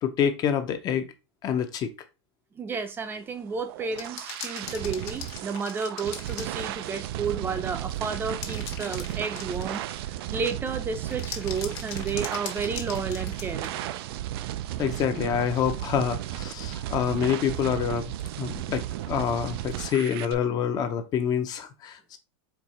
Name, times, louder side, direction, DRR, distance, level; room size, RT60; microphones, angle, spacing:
voice 1, 0.0-1.1 1.4-1.9 14.8-22.2, left 8 dB, 30° left, 0.7 m, -27 dB
voice 2, 2.5-13.8, right 5 dB, 15° right, 0.6 m, -32 dB
sound 1, 3.4-20.3, right 13 dB, 65° right, 0.4 m, -34 dB
sound 2, 3.9-7.0 8.1-10.0 11.1-14.0 14.7-14.8, left 8 dB, 55° left, 1.3 m, -40 dB
4.6 x 2.8 x 4.1 m
supercardioid pair, 150°, 14 cm